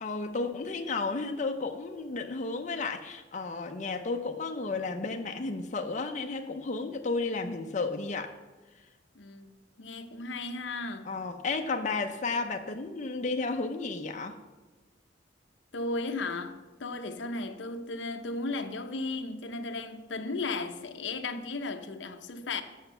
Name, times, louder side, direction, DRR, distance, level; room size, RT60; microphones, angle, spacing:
voice 1, 0.0-8.3 11.1-14.4, left 3 dB, 40° left, 0.6 m, -33 dB
voice 2, 9.2-11.1 15.7-22.6, left 3 dB, 75° left, 0.7 m, -35 dB
8.1 x 6.4 x 6.8 m
head